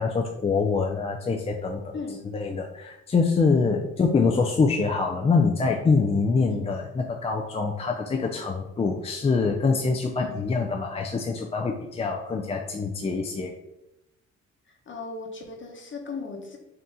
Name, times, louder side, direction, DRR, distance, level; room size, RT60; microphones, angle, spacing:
voice 1, 0.0-2.0 2.3-13.5, left 4 dB, 20° left, 1 dB, 0.4 m, -25 dB
voice 2, 14.7-16.6, left 4 dB, 40° left, 2 dB, 1.0 m, -37 dB
3.9 x 2.8 x 3.6 m, 0.92 s
cardioid pair, 90°, 30 cm